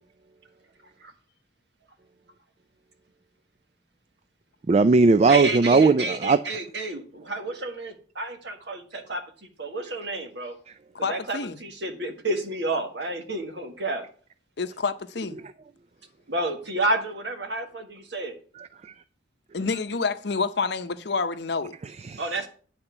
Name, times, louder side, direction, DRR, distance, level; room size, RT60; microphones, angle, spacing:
voice 1, 4.7-6.4 18.6-18.9 21.8-22.2, right 4 dB, 35° right, 0.3 m, -19 dB
voice 2, 5.3-9.2 9.6-10.5 11.0-14.1 16.3-18.4 22.2-22.5, right 2 dB, 65° right, 1.6 m, -30 dB
voice 3, 11.0-11.6 14.6-15.4 19.5-21.8, left 4 dB, 60° left, 0.7 m, -28 dB
9.9 x 4.3 x 6.9 m
head